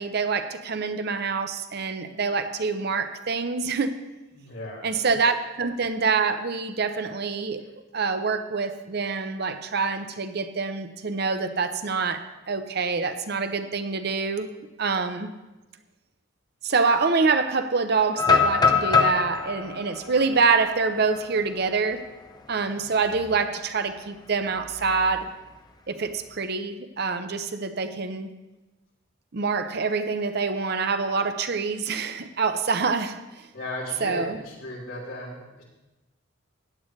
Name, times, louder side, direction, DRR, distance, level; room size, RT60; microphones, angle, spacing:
voice 1, 0.0-3.9 4.8-7.6 7.9-14.5 14.8-15.3 16.6-22.0 22.5-25.3 25.9-28.3 29.3-33.2 34.0-34.4, right 4 dB, 55° right, 9 dB, 0.7 m, -26 dB
voice 2, 4.3-4.9 33.5-35.6, left 1 dB, 90° left, -4 dB, 3.5 m, -36 dB
sound 1, 18.2-22.1 22.5-22.6 23.1-23.4 24.7-25.6, left 5 dB, 20° left, 0.6 m, -24 dB
15.5 x 9.8 x 3.2 m, 1.1 s
head